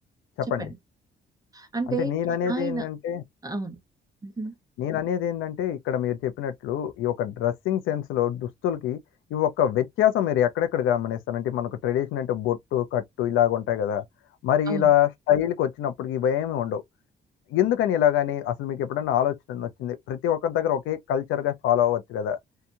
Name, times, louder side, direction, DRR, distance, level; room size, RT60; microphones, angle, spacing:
voice 1, 0.4-0.7 1.9-3.2 4.8-9.0 9.3-14.0 14.4-16.8 17.5-22.4, left 10 dB, 85° left, 0.5 m, -25 dB
voice 2, 1.5-2.1 2.5-2.9 3.4-3.8 4.2-4.5 14.7-14.9, right 3 dB, 20° right, 0.8 m, -31 dB
2.8 x 2.2 x 2.6 m
cardioid pair, 90°, 20 cm